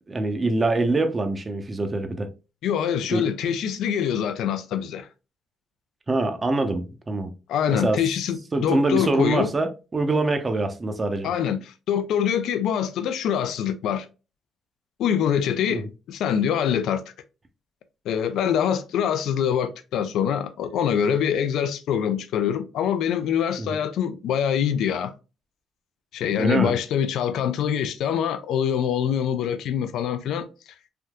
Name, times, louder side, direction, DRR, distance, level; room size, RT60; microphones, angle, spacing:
voice 1, 0.1-2.3 3.1-3.2 6.1-7.3 7.7-8.0 8.5-11.3 15.7-15.9 23.6-23.8 26.4-26.7, right 2 dB, 30° right, 0.6 m, -24 dB
voice 2, 2.6-5.1 7.5-9.5 11.2-11.6 11.9-14.1 15.0-15.8 16.1-17.0 18.1-25.1 26.1-30.5, left 8 dB, 80° left, 0.4 m, -24 dB
3.4 x 2.7 x 2.3 m
cardioid pair, 90°, 0 cm